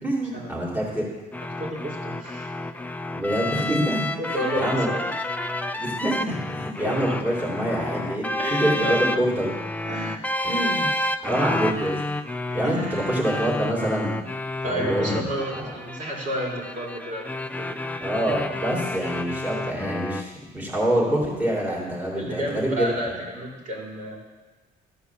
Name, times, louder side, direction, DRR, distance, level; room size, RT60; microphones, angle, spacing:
voice 1, 0.0-1.1 3.1-4.1 4.5-4.9 5.7-9.5 10.4-10.9 11.2-12.0 12.5-14.1 14.6-15.7 18.0-23.2, right 1 dB, 10° right, -5 dB, 2.5 m, -26 dB
sound 1, 1.3-20.2, left 1 dB, 10° left, 0.4 m, -30 dB
voice 2, 1.6-2.5 4.2-5.1 6.8-7.2 8.4-9.4 9.8-10.3 12.5-13.1 14.6-17.8 22.1-24.2, equal, 50° right, -2 dB, 3.4 m, -31 dB
13.5 x 4.7 x 7.0 m, 1.2 s
cardioid pair, 110°, 17 cm